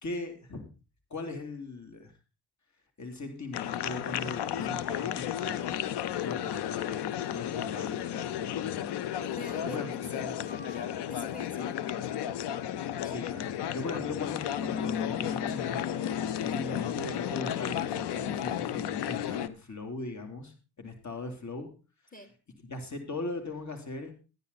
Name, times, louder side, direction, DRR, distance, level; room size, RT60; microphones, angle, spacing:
voice 1, 0.0-0.7 1.1-2.1 3.0-5.7 6.2-9.0 9.6-10.6 13.0-15.9 16.4-21.7 22.6-24.1, left 3 dB, 45° left, 6 dB, 3.3 m, -39 dB
sound 1, 3.5-19.5, left 10 dB, 90° left, 0.8 m, -33 dB
voice 2, 9.2-11.8 22.1-22.3, left 2 dB, 20° left, 7 dB, 3.3 m, -44 dB
14.0 x 10.0 x 4.1 m, 0.32 s
supercardioid pair, 60°, 40 cm